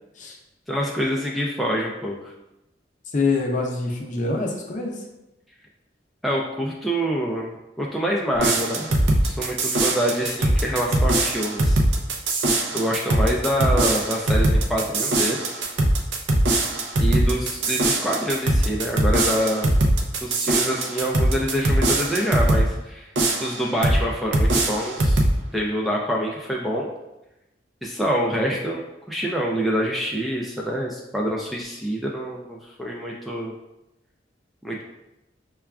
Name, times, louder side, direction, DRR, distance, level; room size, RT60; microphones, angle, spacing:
voice 1, 0.7-2.3 6.2-8.9 9.2-11.8 12.7-15.6 17.0-19.7 20.2-23.1 23.4-25.2 25.5-26.9 27.8-33.5 34.6-34.8, equal, ahead, -3 dB, 0.3 m, -26 dB
voice 2, 3.1-5.0, left 3 dB, 45° left, 0 dB, 0.6 m, -25 dB
sound 1, 8.4-22.7 23.2-24.0 24.3-25.4, right 1 dB, 75° right, 0.5 m, -21 dB
5.7 x 2.3 x 2.3 m, 0.93 s
head